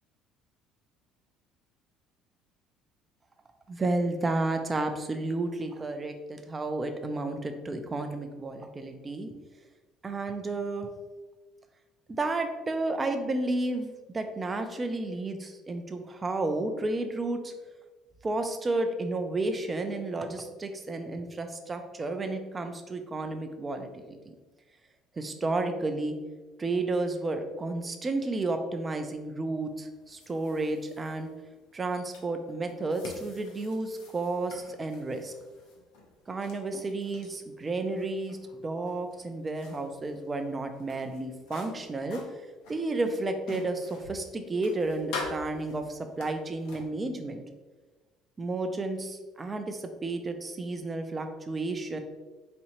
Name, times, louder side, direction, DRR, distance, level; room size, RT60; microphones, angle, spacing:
voice 1, 3.7-9.3 10.0-10.9 12.1-17.5 18.2-24.2 25.1-26.2 26.6-31.3 31.7-35.3 36.3-42.2 42.7-47.4 48.4-52.0, right 2 dB, 20° right, 6 dB, 0.4 m, -32 dB
sound 1, 29.6-46.8, left 3 dB, 90° left, 0.7 m, -46 dB
4.1 x 2.7 x 2.9 m, 1.2 s
cardioid pair, 115°, 0 cm